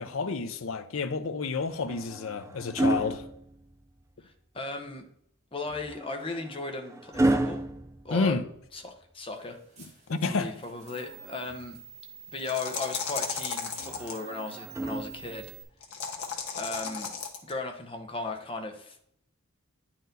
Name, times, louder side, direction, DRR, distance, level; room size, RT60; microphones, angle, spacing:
voice 1, 0.0-3.2 8.1-8.4 10.1-10.5, left 4 dB, 70° left, 0.6 m, -29 dB
sound 1, 1.6-4.1 5.7-8.9 10.6-11.8 13.8-15.6 16.8-17.0, right 2 dB, 15° right, 0.4 m, -32 dB
voice 2, 4.2-5.0 5.5-7.6 8.0-8.4 8.7-9.6 10.3-11.8 12.3-15.5 16.6-17.1 17.4-19.0, left 3 dB, 25° left, 0.9 m, -36 dB
sound 2, 9.3-15.6, right 11 dB, 30° right, 2.0 m, -50 dB
sound 3, 12.4-14.2 15.8-17.5, left 6 dB, 85° left, 1.1 m, -34 dB
9.4 x 4.4 x 4.0 m
head